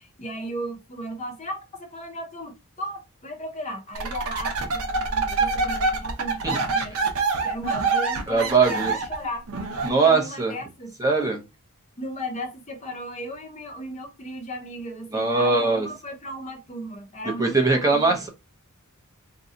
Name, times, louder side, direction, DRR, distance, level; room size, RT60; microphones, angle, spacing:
voice 1, 0.0-7.1 7.4-9.5 9.8-11.3 12.0-18.2, equal, 30° left, 0.8 m, -36 dB
sound 1, 4.0-9.9, right 4 dB, 70° right, 0.7 m, -25 dB
voice 2, 8.3-8.9 9.8-10.5 11.0-11.4 15.1-15.9 17.4-18.3, right 4 dB, 15° right, 0.8 m, -21 dB
2.7 x 2.3 x 3.7 m
head